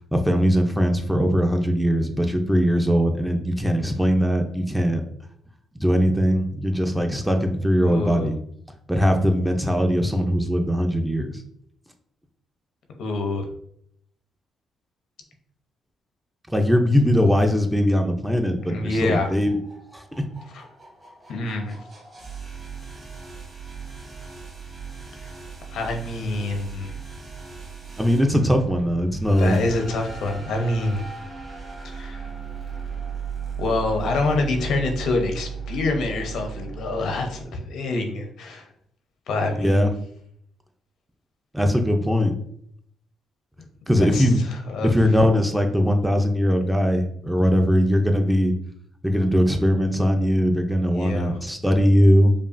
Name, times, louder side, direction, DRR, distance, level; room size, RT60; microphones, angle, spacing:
voice 1, 0.1-5.0 5.8-8.4 8.9-11.4 16.5-19.6 19.9-20.0 28.0-29.6 39.5-39.9 41.5-42.3 43.9-44.4 44.8-48.5 49.0-52.3, equal, ahead, 4 dB, 0.5 m, -20 dB
voice 2, 7.8-8.3 13.0-13.5 18.7-19.3 20.5-20.7 21.3-21.8 25.2-25.3 25.7-26.9 29.4-31.0 31.8-32.2 33.6-38.7 39.3-39.9 44.0-44.3 44.7-44.9 50.9-51.3, left 2 dB, 75° left, 3 dB, 0.7 m, -26 dB
sound 1, 18.6-37.4, right 6 dB, 30° right, 1.4 m, -37 dB
5.1 x 2.3 x 2.5 m, 0.69 s
cardioid pair, 90°, 0 cm